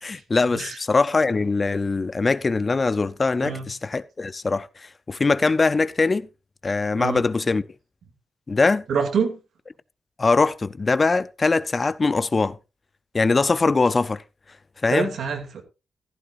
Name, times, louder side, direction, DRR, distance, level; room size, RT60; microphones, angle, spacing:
voice 1, 0.0-6.3 6.6-7.6 8.5-8.8 10.2-12.6 13.1-14.2 14.8-15.1, left 3 dB, 30° left, 0.5 m, -22 dB
voice 2, 3.4-3.7 7.0-7.3 8.9-9.4 14.9-15.6, right 6 dB, 85° right, 2.5 m, -26 dB
14.5 x 13.0 x 2.5 m
wide cardioid pair, 110°, 0 cm